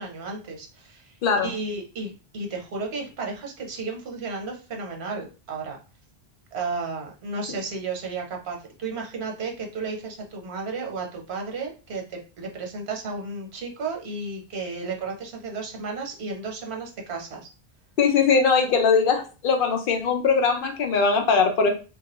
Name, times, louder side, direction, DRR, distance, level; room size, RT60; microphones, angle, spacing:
voice 1, 0.0-1.2 1.4-5.8 6.5-17.5, right 4 dB, 85° right, 1.0 m, -33 dB
voice 2, 1.2-1.5 18.0-21.7, left 5 dB, 65° left, 0.7 m, -21 dB
2.2 x 2.2 x 2.9 m
omnidirectional pair, 1.1 m